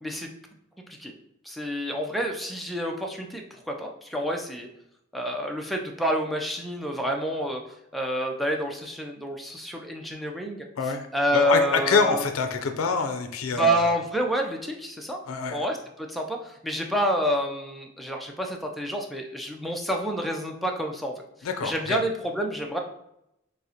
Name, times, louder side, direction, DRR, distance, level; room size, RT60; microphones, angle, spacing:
voice 1, 1.4-4.7 5.1-7.6 7.9-10.7 11.1-12.3 13.6-15.2 15.5-21.1 21.6-22.8, equal, ahead, 1 dB, 0.4 m, -28 dB
voice 2, 10.8-11.1 11.3-13.9 15.3-15.6 21.4-22.0, left 5 dB, 85° left, 6 dB, 0.4 m, -26 dB
6.1 x 2.1 x 2.8 m, 0.80 s
head